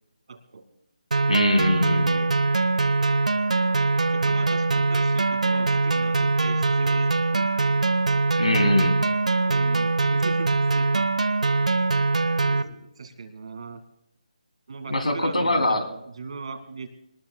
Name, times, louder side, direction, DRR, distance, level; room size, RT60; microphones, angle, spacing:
voice 1, 0.3-0.6 4.0-7.6 9.5-11.1 12.5-13.8 14.7-16.9, right 4 dB, 50° right, 7 dB, 2.1 m, -39 dB
sound 1, 1.1-12.6, right 3 dB, 75° right, 0.9 m, -22 dB
voice 2, 1.3-2.3 8.4-9.1 14.9-15.9, left 1 dB, 85° left, 6 dB, 2.9 m, -23 dB
25.5 x 19.5 x 2.3 m, 0.82 s
figure-of-eight pair, 155°, 4 cm